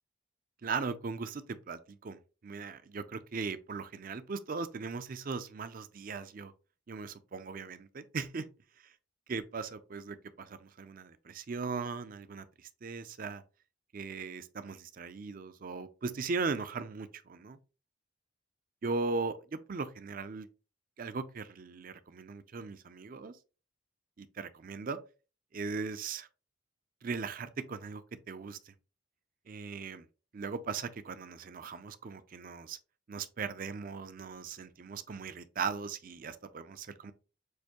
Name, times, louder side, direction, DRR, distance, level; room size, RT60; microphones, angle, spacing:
voice 1, 0.6-6.5 6.9-8.5 9.3-13.4 13.9-17.6 18.8-19.4 19.7-20.5 21.0-23.4 24.2-25.0 25.5-26.3 27.0-28.0 28.3-28.7 29.5-30.1 30.3-32.8 33.1-37.1, right 4 dB, 45° right, 0.4 m, -38 dB
6.5 x 2.6 x 2.9 m
head